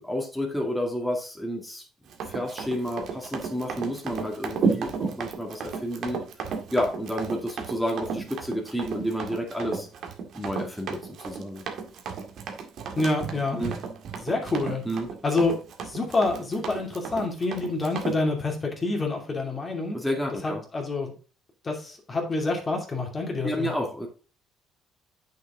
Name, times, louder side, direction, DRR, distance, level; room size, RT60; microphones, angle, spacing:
voice 1, 0.0-1.8 2.3-6.2 6.7-9.9 10.3-11.6 13.5-13.7 14.8-15.1 19.9-20.6 23.4-24.1, equal, ahead, -1 dB, 2.3 m, -30 dB
Run, 2.1-18.2, right 5 dB, 60° right, 1.9 m, -33 dB
voice 2, 13.0-13.6 14.2-14.8 15.2-15.5 15.8-20.0 20.4-21.1 21.6-23.7, left 3 dB, 25° left, 1 dB, 2.7 m, -27 dB
8.6 x 6.6 x 3.7 m, 0.36 s
cardioid pair, 105°, 0 cm